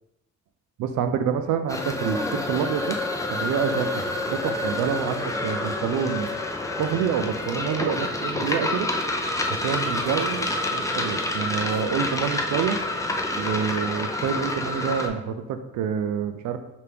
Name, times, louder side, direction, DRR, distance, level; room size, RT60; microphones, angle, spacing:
voice 1, 0.8-3.0 3.3-6.3 6.8-8.9 9.6-12.8 13.4-16.6, right 7 dB, 80° right, 9 dB, 0.5 m, -27 dB
sound 1, 1.7-15.1, left 2 dB, 10° left, 0.5 m, -28 dB
5.6 x 2.5 x 3.4 m, 0.97 s
cardioid pair, 90°, 30 cm